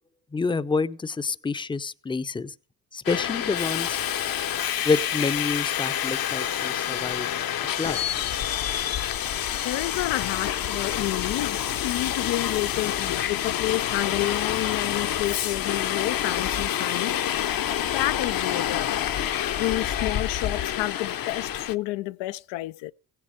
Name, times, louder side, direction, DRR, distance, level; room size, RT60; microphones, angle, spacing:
voice 1, 0.3-2.5 2.9-4.0 4.8-7.3 7.8-8.0, left 4 dB, 10° left, 0.5 m, -28 dB
Subway metro underground, 3.1-21.8, left 10 dB, 50° left, 0.8 m, -28 dB
voice 2, 9.4-17.2 17.9-19.2 19.6-22.9, left 17 dB, 85° left, 0.5 m, -30 dB
16.0 x 7.6 x 4.9 m
supercardioid pair, 65°, 44 cm